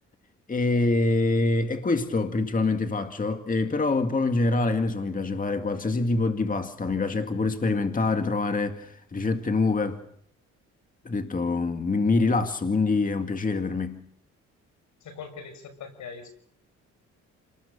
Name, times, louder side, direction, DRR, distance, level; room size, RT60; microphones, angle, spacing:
voice 1, 0.5-10.0 11.0-14.0, left 3 dB, 25° left, 2.1 m, -25 dB
voice 2, 15.0-16.3, left 5 dB, 70° left, 6.4 m, -41 dB
29.5 x 20.5 x 6.8 m
cardioid pair, 90°, 30 cm